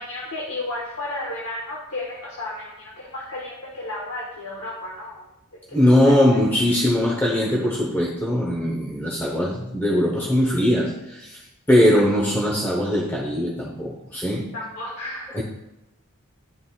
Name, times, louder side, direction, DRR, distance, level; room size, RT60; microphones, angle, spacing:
voice 1, 0.0-5.3 5.7-6.7 11.9-12.0 14.5-15.4, left 2 dB, 70° left, -4 dB, 1.1 m, -33 dB
voice 2, 5.7-11.4 11.7-14.5 15.3-15.4, left 1 dB, 10° left, -3 dB, 0.7 m, -20 dB
11.5 x 3.8 x 2.3 m, 0.92 s
head